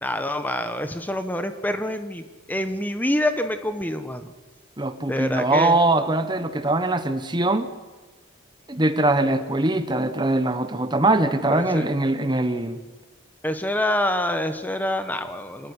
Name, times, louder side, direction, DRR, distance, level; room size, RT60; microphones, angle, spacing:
voice 1, 0.0-4.3 5.1-5.8 11.5-11.9 13.4-15.7, left 1 dB, 10° left, 8 dB, 1.3 m, -26 dB
voice 2, 4.8-7.7 8.7-12.8, right 2 dB, 20° right, 10 dB, 1.2 m, -22 dB
27.0 x 18.0 x 9.9 m, 1.3 s
head